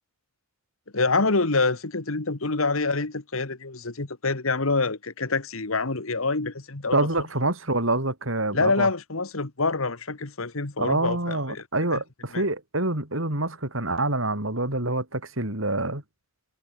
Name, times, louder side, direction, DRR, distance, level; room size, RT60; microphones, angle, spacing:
voice 1, 0.9-7.1 8.5-11.6 11.9-12.0 12.3-12.4, left 3 dB, 75° left, 1.7 m, -26 dB
voice 2, 6.9-8.9 10.8-16.0, right 2 dB, 65° right, 5.6 m, -26 dB
head